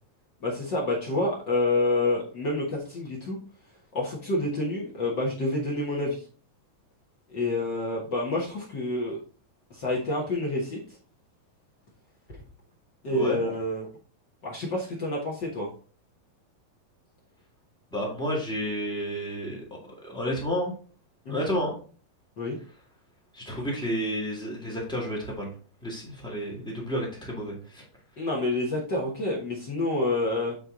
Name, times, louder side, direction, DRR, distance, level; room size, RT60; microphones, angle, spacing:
voice 1, 0.4-3.4 3.9-6.2 7.3-9.2 9.7-10.8 13.0-13.9 14.4-15.7 21.2-21.4 22.4-22.6 28.2-30.5, left 2 dB, 60° left, -2 dB, 1.1 m, -28 dB
voice 2, 13.1-13.4 17.9-20.7 21.3-21.8 23.3-25.5 25.8-27.8, equal, 5° left, -3 dB, 0.5 m, -31 dB
8.0 x 4.4 x 3.8 m, 0.40 s
omnidirectional pair, 4.2 m